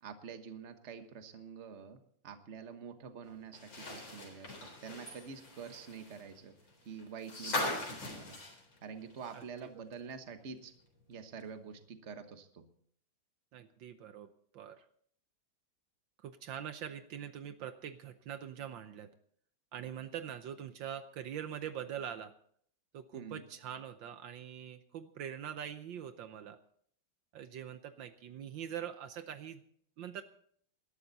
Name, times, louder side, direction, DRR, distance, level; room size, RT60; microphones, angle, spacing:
voice 1, 0.0-4.5 4.8-6.5 6.8-8.4 8.8-10.7 11.1-12.7 23.1-23.5, right 6 dB, 40° right, 8 dB, 1.3 m, -47 dB
sound 1, 3.5-9.6 9.9-10.0 11.4-11.5, left 2 dB, 80° left, 4.8 m, -40 dB
voice 2, 13.5-14.3 14.5-14.9 16.2-19.1 19.7-22.3 22.9-26.6 27.3-29.6 30.0-30.2, right 9 dB, 70° right, 10 dB, 1.5 m, -43 dB
20.0 x 12.5 x 4.1 m, 0.62 s
omnidirectional pair, 2.2 m